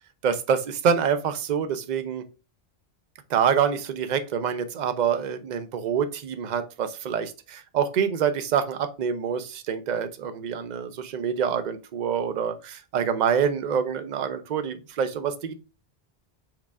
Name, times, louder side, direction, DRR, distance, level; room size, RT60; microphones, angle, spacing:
voice 1, 0.2-2.2 3.3-15.6, right 7 dB, 50° right, 0.6 m, -26 dB
4.7 x 2.4 x 4.5 m
omnidirectional pair, 1.1 m